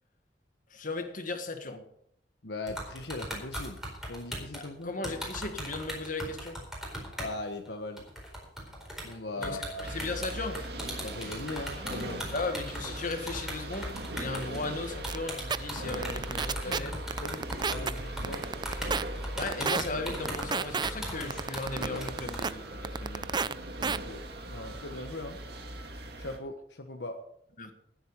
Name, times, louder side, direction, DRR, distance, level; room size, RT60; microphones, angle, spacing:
voice 1, 0.7-1.9 4.6-6.6 9.4-10.6 12.3-16.9 19.4-23.3 27.6-27.7, left 3 dB, 50° left, 6 dB, 1.7 m, -36 dB
voice 2, 2.4-3.8 4.0-4.9 7.2-8.0 9.0-9.9 11.0-12.3 16.6-18.4 23.8-25.4 26.2-27.2, left 2 dB, 70° left, 4 dB, 1.3 m, -39 dB
sound 1, 2.7-7.4 7.6-7.7 8.0-22.5, equal, 5° right, 4.4 m, -39 dB
sound 2, 9.8-26.4, right 1 dB, 65° right, 2.1 m, -40 dB
sound 3, 15.1-15.2 15.5-15.6 15.9-16.8 17.1-17.9 18.2-19.0 19.4-19.8 20.3-20.9 21.3-22.5 22.8-23.5 23.8-24.0, right 5 dB, 25° right, 0.4 m, -29 dB
19.5 x 8.0 x 5.2 m, 0.70 s
head